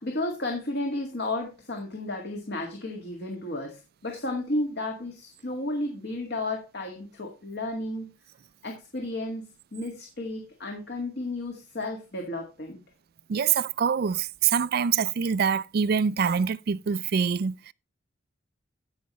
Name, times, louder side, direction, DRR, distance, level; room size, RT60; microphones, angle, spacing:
voice 1, 0.0-8.1 8.6-12.8, left 2 dB, 55° left, 1.9 m, -33 dB
voice 2, 13.3-17.7, right 6 dB, 50° right, 0.4 m, -25 dB
16.0 x 5.6 x 3.1 m
head